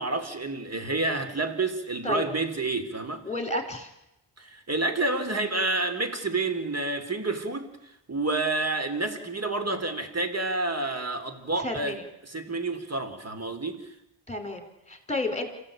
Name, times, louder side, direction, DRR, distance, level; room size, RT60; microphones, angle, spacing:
voice 1, 0.0-3.2 4.4-7.7 8.1-12.0 12.2-13.9, right 2 dB, 35° right, 3.4 m, -29 dB
voice 2, 3.2-3.9 11.6-12.0 14.3-15.5, left 2 dB, 15° left, 5.2 m, -31 dB
28.5 x 16.0 x 8.9 m
wide cardioid pair, 90°, 45 cm